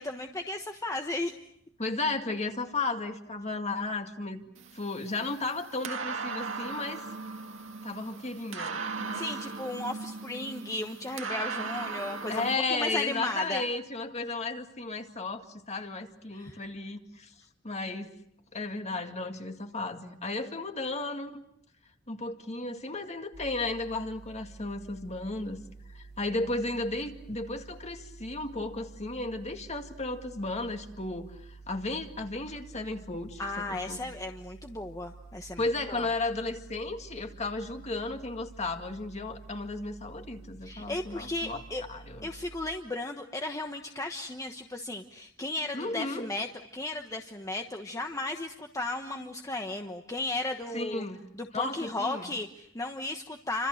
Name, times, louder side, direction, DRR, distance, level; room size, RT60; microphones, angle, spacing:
voice 1, 0.0-1.3 8.9-13.6 16.3-16.6 33.4-36.1 40.6-41.8 42.2-46.5 46.7-51.0 51.3-53.7, left 2 dB, 15° left, 4 dB, 1.2 m, -35 dB
voice 2, 1.8-7.0 7.8-9.2 12.3-17.3 17.6-18.1 18.5-21.4 22.1-25.6 25.9-33.4 33.7-34.0 35.6-41.6 41.9-42.3 45.7-46.3 50.7-51.3 51.5-52.3, left 2 dB, 35° left, 6 dB, 2.1 m, -34 dB
sound 1, 4.6-12.5, right 4 dB, 70° right, 2.0 m, -38 dB
sound 2, 23.3-42.6, right 3 dB, 55° left, 3.5 m, -50 dB
29.5 x 26.0 x 6.5 m, 0.73 s
head